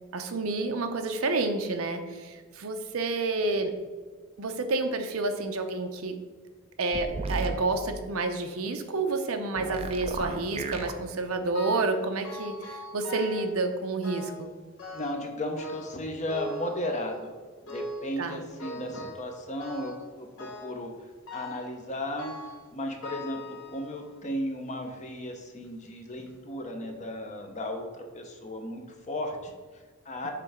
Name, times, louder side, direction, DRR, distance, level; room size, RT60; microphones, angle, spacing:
voice 1, 0.1-3.7 4.4-6.2 6.8-14.5 18.2-18.4 30.2-30.3, right 3 dB, 80° right, 6 dB, 0.7 m, -29 dB
sound 1, 6.9-7.6 9.6-10.9, right 3 dB, 30° right, 0.4 m, -33 dB
sound 2, 11.5-12.0 12.2-13.5 14.0-14.5 14.8-15.3 15.6-17.2 17.7-18.1 18.6-19.3 19.6-20.1 20.4-20.8 21.3-21.7 22.2-22.6 23.0-24.1 24.7-24.8 25.6-25.7 26.2-26.3, left 2 dB, 70° left, 1.3 m, -41 dB
voice 2, 14.9-17.3 17.6-30.3, left 1 dB, 35° left, 3 dB, 0.8 m, -35 dB
6.8 x 3.3 x 4.9 m, 1.5 s
head